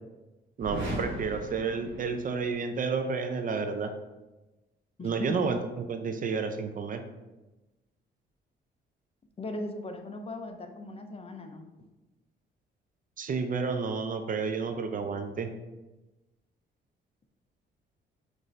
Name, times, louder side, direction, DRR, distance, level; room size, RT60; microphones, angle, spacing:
voice 1, 0.6-3.9 5.0-7.0 13.2-15.5, right 5 dB, 45° right, 7 dB, 0.5 m, -31 dB
sound 1, 0.6-2.6, right 1 dB, 80° right, 1.4 m, -37 dB
voice 2, 5.0-5.4 9.4-11.9, left 2 dB, 30° left, 5 dB, 0.5 m, -38 dB
6.2 x 2.6 x 3.2 m, 1.1 s
cardioid pair, 90°, 20 cm